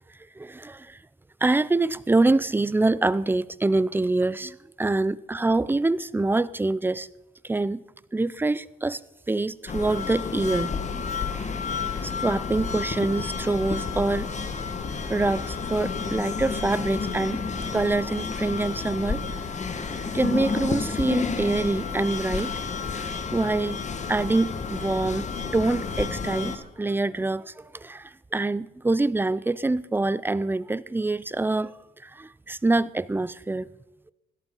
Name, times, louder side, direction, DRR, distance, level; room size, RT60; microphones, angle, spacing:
voice 1, 0.4-1.0 1.4-7.1 7.4-7.8 8.1-9.0 9.3-10.8 12.0-14.3 15.1-17.4 17.7-19.2 20.1-22.5 22.9-23.8 24.1-25.3 25.5-31.7 32.0-33.7, right 2 dB, 10° right, 0.5 m, -25 dB
sound 1, 9.7-26.6, left 5 dB, 35° left, 1.7 m, -30 dB
16.5 x 12.0 x 5.5 m
cardioid pair, 90°, 20 cm